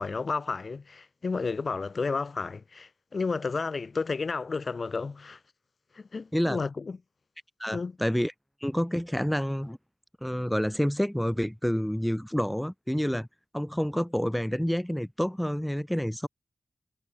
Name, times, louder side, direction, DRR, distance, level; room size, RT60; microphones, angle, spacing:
voice 1, 0.0-5.4 5.9-7.0 7.7-8.0, left 4 dB, 45° left, 0.4 m, -32 dB
voice 2, 7.6-8.3 8.6-9.8 10.2-13.3 13.5-16.3, equal, 5° left, 0.9 m, -28 dB
wide cardioid pair, 145°, 0 cm